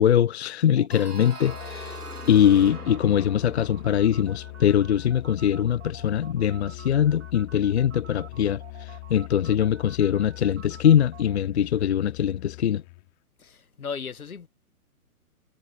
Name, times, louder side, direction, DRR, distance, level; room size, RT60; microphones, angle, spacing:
voice 1, 0.0-2.0 2.3-12.8, left 9 dB, 45° left, 0.8 m, -22 dB
sound 1, 0.8-11.4, right 8 dB, 55° right, 5.8 m, -48 dB
sound 2, 0.9-5.6, right 2 dB, 85° right, 3.4 m, -43 dB
Musical instrument, 1.4-13.1, left 25 dB, 30° left, 3.1 m, -41 dB
voice 2, 13.4-14.5, left 6 dB, 70° left, 1.4 m, -36 dB
figure-of-eight pair, 125°, 45 cm